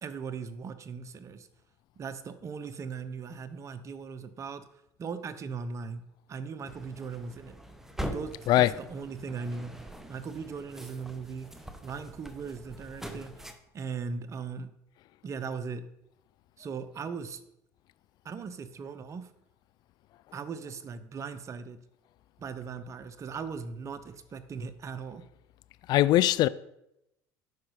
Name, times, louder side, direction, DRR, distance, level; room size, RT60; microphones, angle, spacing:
voice 1, 0.0-1.5 2.0-4.6 5.0-6.0 6.3-7.6 8.0-9.7 10.1-11.5 11.8-13.4 13.7-14.7 15.2-15.8 16.6-17.4 18.2-19.3 20.3-21.8 22.4-25.2, right 5 dB, 40° right, 0.9 m, -38 dB
sound 1, 6.7-13.5, equal, 5° right, 1.1 m, -43 dB
voice 2, 8.5-8.8 25.9-26.5, left 14 dB, 60° left, 0.4 m, -21 dB
9.4 x 6.0 x 4.8 m
supercardioid pair, 90°, 8 cm